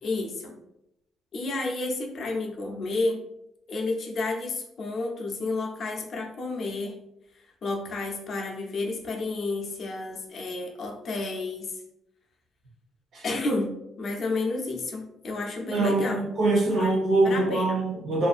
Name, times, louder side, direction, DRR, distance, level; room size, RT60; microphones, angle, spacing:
voice 1, 0.0-0.5 1.3-3.2 3.7-7.0 7.3-11.7 13.2-16.2 16.7-16.9 17.2-17.8, left 3 dB, 50° left, 0 dB, 0.6 m, -31 dB
voice 2, 15.7-18.3, right 2 dB, 60° right, -2 dB, 0.9 m, -23 dB
2.6 x 2.5 x 2.4 m, 0.82 s
cardioid pair, 110°, 0 cm